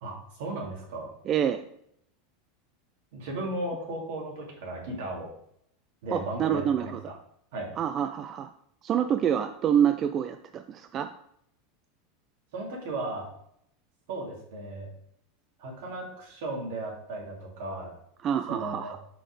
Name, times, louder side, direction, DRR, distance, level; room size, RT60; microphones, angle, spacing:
voice 1, 0.0-1.1 3.1-5.3 6.0-7.2 7.5-7.7 12.5-13.3 14.1-14.9 15.6-18.0 18.5-19.0, right 2 dB, 75° right, -2 dB, 2.4 m, -35 dB
voice 2, 1.3-1.6 6.1-7.2 7.8-8.5 8.8-11.1 18.2-19.0, right 9 dB, 35° right, 9 dB, 0.3 m, -27 dB
5.8 x 4.1 x 4.8 m, 0.71 s
supercardioid pair, 125°, 0 cm